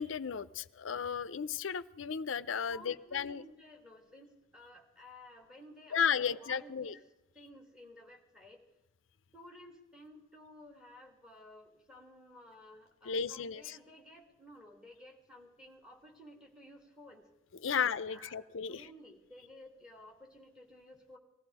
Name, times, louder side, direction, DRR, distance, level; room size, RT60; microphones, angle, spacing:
voice 1, 0.0-3.4 5.9-6.9 13.1-13.8 17.6-18.8, left 7 dB, 70° left, 15 dB, 0.6 m, -34 dB
voice 2, 2.7-7.0 7.3-8.6 9.3-17.3 17.7-18.4 18.7-21.2, left 1 dB, 5° right, 2 dB, 2.7 m, -55 dB
19.5 x 14.5 x 4.9 m, 0.99 s
head